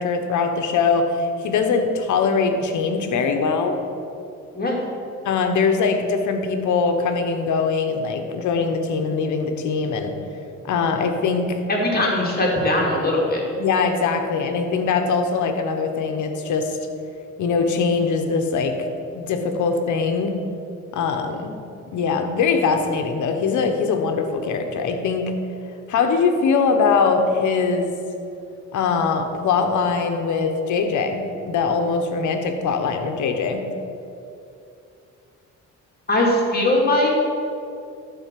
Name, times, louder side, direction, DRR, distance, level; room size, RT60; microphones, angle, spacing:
voice 1, 0.0-3.8 5.2-10.1 10.6-11.6 13.5-16.8 17.4-18.9 19.1-20.4 20.9-21.6 21.9-25.3 25.9-27.9 28.7-33.7, left 5 dB, 75° left, 5 dB, 1.2 m, -22 dB
voice 2, 11.7-13.4 36.1-37.1, left 1 dB, 30° left, -2 dB, 2.5 m, -20 dB
12.5 x 4.3 x 7.6 m, 2.6 s
cardioid pair, 90°, 30 cm